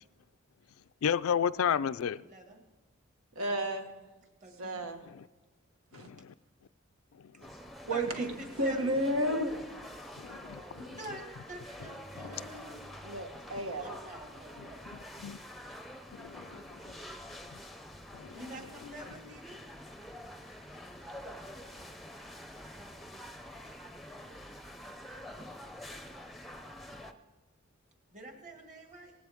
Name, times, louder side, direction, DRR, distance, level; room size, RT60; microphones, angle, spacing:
voice 1, 1.0-2.2 5.1-5.3 5.9-6.3 7.2-7.3 10.2-11.0 12.3-12.4 14.9-15.4 16.1-16.9 18.1-18.4, left 8 dB, 75° left, 0.4 m, -33 dB
voice 2, 2.3-2.6 3.5-3.7 4.4-4.8 7.9-8.9 10.8-12.8 13.7-14.9 18.3-19.6 28.1-29.1, right 1 dB, 35° right, 1.9 m, -45 dB
voice 3, 3.3-3.9 4.6-5.0 5.9-6.1 7.8-8.3 8.6-9.5 13.0-13.8, right 1 dB, 85° right, 1.6 m, -31 dB
sound 1, 7.4-27.1, equal, ahead, 0.6 m, -47 dB
18.5 x 15.5 x 3.6 m
head